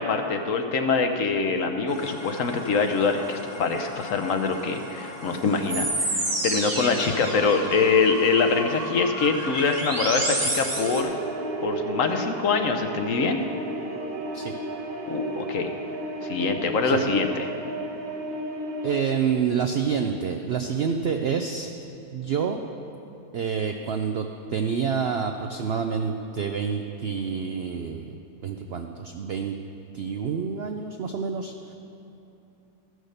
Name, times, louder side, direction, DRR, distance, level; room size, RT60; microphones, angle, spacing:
voice 1, 0.0-11.1 11.6-13.4 15.1-15.7 16.2-17.5, left 4 dB, 60° left, 6 dB, 1.0 m, -24 dB
sound 1, 1.9-11.0, right 1 dB, 20° right, 1.2 m, -31 dB
sound 2, 10.7-18.9, right 2 dB, 65° right, 1.4 m, -33 dB
voice 2, 18.8-21.7 22.1-22.6 23.3-29.5 29.9-31.7, right 6 dB, 85° right, 5 dB, 0.5 m, -28 dB
13.5 x 6.4 x 6.5 m, 2.9 s
omnidirectional pair, 1.7 m